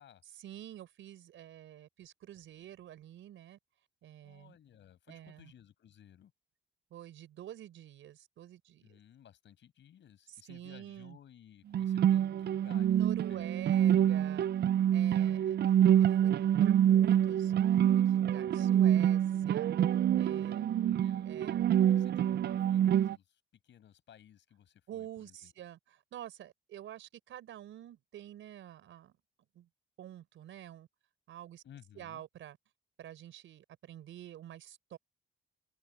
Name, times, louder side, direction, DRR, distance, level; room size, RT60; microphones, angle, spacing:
voice 1, 0.3-3.6 4.0-4.6 5.1-5.5 6.9-9.0 10.3-11.2 12.9-14.5 14.9-15.6 16.0-19.7 20.1-20.6 21.2-21.7 24.9-29.2 29.5-29.7 30.0-30.9 31.3-31.6 32.0-32.6 33.0-35.0, right 11 dB, 75° right, 4.8 m, -48 dB
voice 2, 4.2-6.3 8.8-14.3 20.6-21.4 21.9-25.5 31.6-32.2, left 10 dB, 65° left, 6.5 m, -58 dB
sound 1, 11.7-23.1, right 10 dB, 55° right, 0.5 m, -26 dB
cardioid pair, 90°, 20 cm